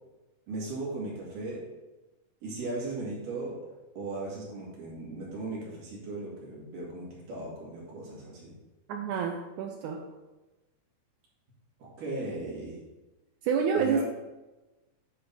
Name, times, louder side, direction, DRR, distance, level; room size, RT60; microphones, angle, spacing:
voice 1, 0.5-1.7 2.4-3.6 4.0-8.5 11.8-12.8 13.7-14.0, right 2 dB, 65° right, -5 dB, 3.7 m, -37 dB
voice 2, 8.9-10.0 13.4-14.0, right 6 dB, 85° right, 4 dB, 1.7 m, -28 dB
9.8 x 3.9 x 5.4 m, 1.1 s
omnidirectional pair, 4.2 m